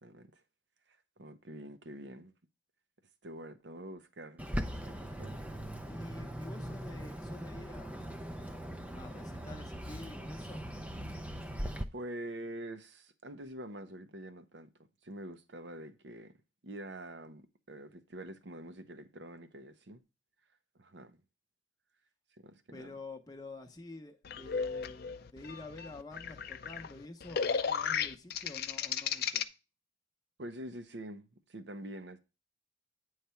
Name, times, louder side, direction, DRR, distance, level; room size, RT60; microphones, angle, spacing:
voice 1, 0.0-0.4 1.2-2.3 3.2-4.5 4.8-5.6 11.4-16.4 16.6-20.0 20.7-21.2 22.4-22.9 30.4-32.2, right 1 dB, 55° right, 0.8 m, -46 dB
Bird, 4.4-11.8, equal, 5° right, 0.4 m, -40 dB
voice 2, 5.9-8.2 8.9-10.6 22.7-29.4, left 2 dB, 20° left, 0.8 m, -48 dB
sound 1, 24.2-29.4, left 7 dB, 50° left, 0.4 m, -35 dB
9.2 x 3.3 x 5.6 m
head